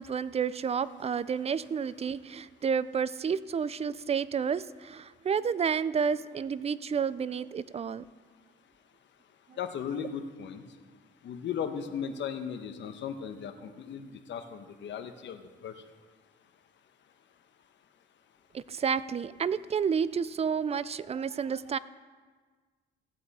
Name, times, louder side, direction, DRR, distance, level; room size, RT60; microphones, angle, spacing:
voice 1, 0.0-8.0 18.5-21.8, right 6 dB, 30° right, 17 dB, 0.4 m, -30 dB
voice 2, 9.6-10.6 11.2-15.7, left 7 dB, 65° left, 8 dB, 1.1 m, -37 dB
15.5 x 8.7 x 4.2 m, 1.5 s
cardioid pair, 90°, 20 cm